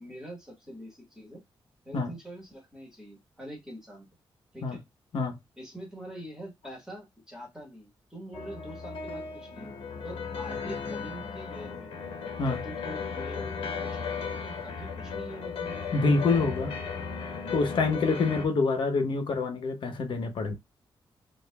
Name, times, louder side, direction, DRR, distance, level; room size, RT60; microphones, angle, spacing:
voice 1, 0.0-1.4 1.8-4.1 4.5-4.8 5.6-11.9 12.4-16.1, right 1 dB, 5° right, 1.6 m, -44 dB
sound 1, 8.3-18.5, left 5 dB, 85° left, 0.8 m, -36 dB
voice 2, 15.9-16.7 17.5-20.5, left 3 dB, 65° left, 0.9 m, -26 dB
5.2 x 2.5 x 2.2 m
wide cardioid pair, 175°, 9 cm